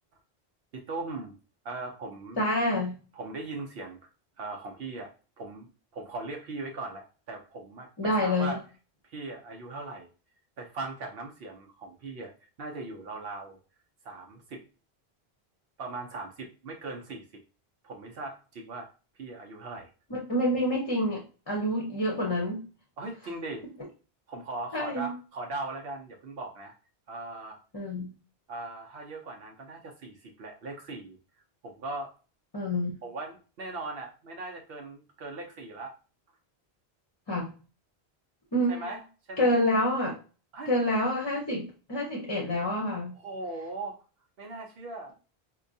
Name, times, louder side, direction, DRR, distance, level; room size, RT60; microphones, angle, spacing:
voice 1, 0.7-1.3 1.6-2.4 3.1-4.1 4.4-8.6 9.0-10.1 10.6-12.3 12.6-13.6 14.0-14.6 15.8-17.4 17.8-18.9 19.2-19.9 23.0-23.6 24.3-26.7 27.1-27.6 28.5-31.2 31.6-32.1 33.0-35.9 38.7-39.0 39.3-39.5 40.5-40.7 43.1-44.0 44.4-45.1, right 2 dB, 70° right, 1 dB, 0.8 m, -39 dB
voice 2, 2.4-3.0 8.0-8.6 20.1-22.6 24.7-25.1 27.7-28.1 32.5-32.9 37.3-37.5 38.5-38.9 39.4-40.1 40.7-43.2, left 1 dB, 25° left, -2 dB, 0.7 m, -27 dB
4.5 x 2.2 x 2.6 m, 0.35 s
omnidirectional pair, 1.0 m